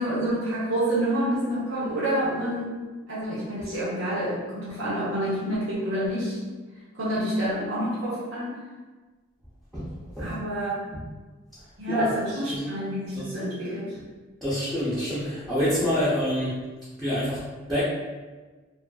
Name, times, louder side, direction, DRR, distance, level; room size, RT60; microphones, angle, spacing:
voice 1, 0.0-2.7 3.1-6.4 6.9-8.6 10.2-10.9 11.8-14.0, right 1 dB, 85° right, -9 dB, 0.7 m, -28 dB
voice 2, 14.4-16.6 17.0-17.4 17.7-17.8, left 1 dB, ahead, -13 dB, 0.5 m, -26 dB
2.4 x 2.4 x 2.2 m, 1.3 s
head